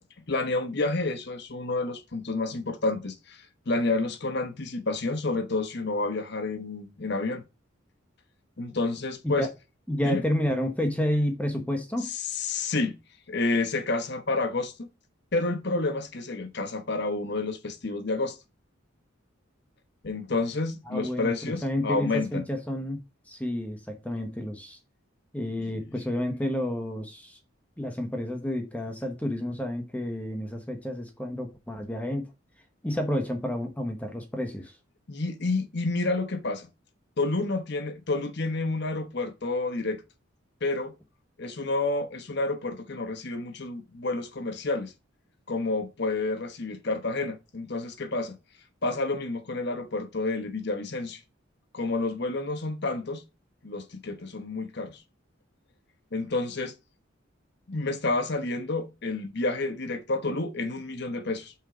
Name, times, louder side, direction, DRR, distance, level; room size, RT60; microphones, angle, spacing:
voice 1, 0.3-7.4 8.6-9.5 10.0-10.2 12.0-12.9 13.3-14.9 15.3-18.4 20.0-22.4 25.6-25.7 35.1-36.7 37.2-40.0 40.6-40.9 41.4-44.9 45.5-48.3 48.8-51.2 51.7-53.2 53.6-55.0 56.1-56.7 57.7-61.5, left 3 dB, 55° left, 1.1 m, -29 dB
voice 2, 9.9-12.1 20.9-24.8 25.3-27.4 27.8-32.3 32.8-34.7, left 1 dB, 5° left, 1.0 m, -30 dB
5.7 x 4.5 x 4.9 m
head